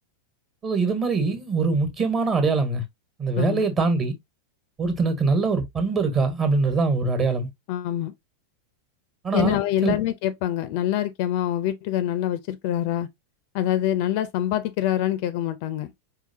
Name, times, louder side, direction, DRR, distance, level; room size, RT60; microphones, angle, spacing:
voice 1, 0.6-2.8 3.2-4.1 4.8-7.5 9.2-10.0, right 4 dB, 25° right, 1.4 m, -23 dB
voice 2, 7.7-8.1 9.3-13.1 13.5-15.9, left 12 dB, 45° left, 0.6 m, -25 dB
4.8 x 3.4 x 2.7 m
figure-of-eight pair, 90°, 0 cm